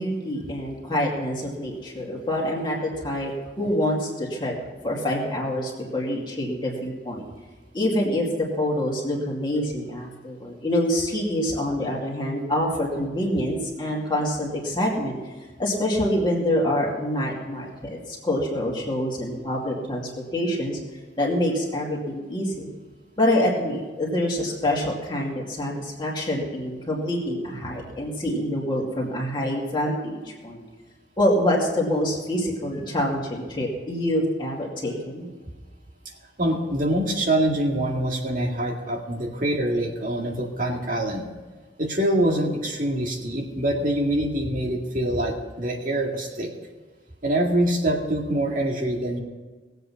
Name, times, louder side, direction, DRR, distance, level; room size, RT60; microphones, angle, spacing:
voice 1, 0.0-3.3 3.6-4.5 4.8-7.2 7.7-8.3 8.6-15.2 15.6-20.8 21.2-22.7 23.2-30.6 31.2-35.3, left 1 dB, 25° left, -3 dB, 2.4 m, -26 dB
voice 2, 36.4-41.3 41.8-46.5 47.2-49.2, right 1 dB, 45° right, 1 dB, 2.1 m, -25 dB
19.0 x 8.0 x 5.7 m, 1.3 s
head